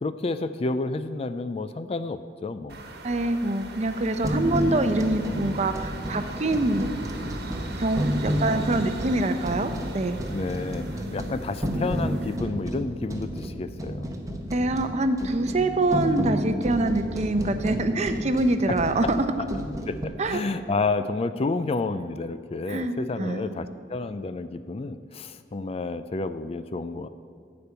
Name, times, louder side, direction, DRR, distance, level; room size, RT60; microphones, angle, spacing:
voice 1, 0.0-2.9 8.4-8.7 10.3-14.1 18.7-18.8 19.4-19.5 19.9-27.1, left 3 dB, 35° left, 12 dB, 0.4 m, -30 dB
sound 1, 2.7-12.4, right 2 dB, 60° right, 1.3 m, -40 dB
voice 2, 3.0-6.9 7.8-10.2 14.5-19.3 20.2-20.4 22.7-23.6, right 2 dB, 40° right, 9 dB, 0.6 m, -25 dB
sound 2, 4.2-20.1, equal, 20° right, 0.9 m, -31 dB
13.0 x 5.2 x 8.1 m, 2.1 s
head